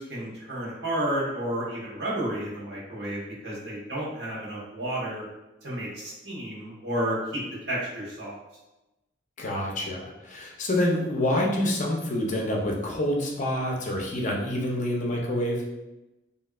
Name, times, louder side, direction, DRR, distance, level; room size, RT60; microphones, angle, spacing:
voice 1, 0.0-5.2 5.6-7.4 7.7-8.3, right 1 dB, 70° right, -5 dB, 1.0 m, -31 dB
voice 2, 9.4-15.6, left 1 dB, 45° left, -1 dB, 0.5 m, -27 dB
3.1 x 2.6 x 2.3 m, 0.97 s
head